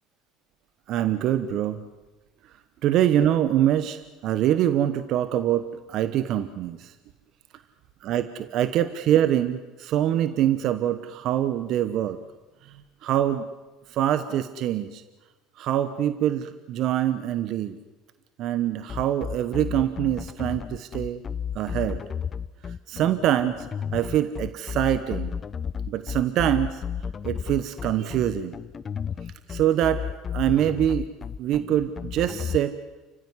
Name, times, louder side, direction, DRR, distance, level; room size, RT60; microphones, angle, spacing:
voice 1, 0.9-1.8 2.8-6.9 8.0-12.2 13.0-13.5 13.9-15.0 15.6-17.8 18.4-21.2 21.5-22.0 22.9-23.7 23.9-25.3 25.9-26.8 27.2-28.6 29.5-31.1 31.4-32.7, right 11 dB, 60° right, 12 dB, 1.1 m, -24 dB
sound 1, 18.9-32.6, left 7 dB, 35° left, 0.8 m, -32 dB
29.5 x 15.5 x 9.7 m, 1.2 s
supercardioid pair, 85°, 0 cm